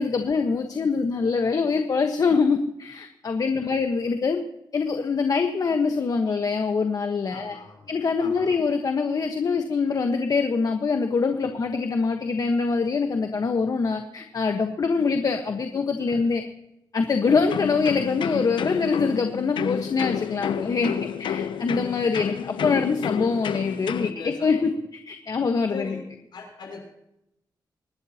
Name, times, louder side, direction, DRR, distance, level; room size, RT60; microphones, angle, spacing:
voice 1, 0.0-4.4 4.7-7.6 7.9-16.4 16.9-20.9 21.2-26.0, left 4 dB, 50° left, 5 dB, 1.2 m, -24 dB
voice 2, 7.3-7.9 8.2-8.6 11.4-11.6 16.1-16.3 23.5-23.6 24.0-24.7 25.7-26.0 26.3-26.8, left 4 dB, 65° left, 2 dB, 6.0 m, -41 dB
sound 1, 17.2-24.1, left 8 dB, 80° left, 0.7 m, -30 dB
26.0 x 12.0 x 2.9 m, 0.85 s
wide cardioid pair, 110°, 8 cm